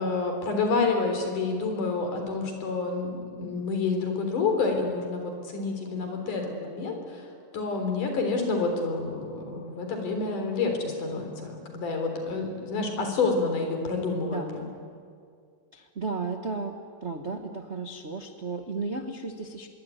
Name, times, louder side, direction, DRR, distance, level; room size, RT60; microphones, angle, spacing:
voice 1, 0.0-7.3 7.5-14.5, left 4 dB, 80° left, 4 dB, 5.3 m, -28 dB
voice 2, 14.2-14.7 15.7-19.7, right 4 dB, 85° right, 5 dB, 0.6 m, -34 dB
26.0 x 22.5 x 9.3 m, 2.2 s
omnidirectional pair, 3.6 m